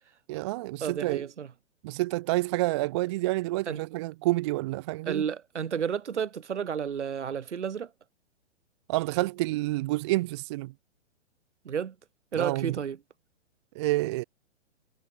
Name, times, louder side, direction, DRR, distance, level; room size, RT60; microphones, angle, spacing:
voice 1, 0.3-1.3 1.8-5.2 8.9-10.7 12.4-12.8 13.8-14.2, right 19 dB, 25° right, 0.4 m, -28 dB
voice 2, 0.8-1.5 3.7-3.8 5.0-7.9 11.6-11.9 12.3-13.0, right 7 dB, 75° right, 2.8 m, -31 dB
hypercardioid pair, 125°, 35 cm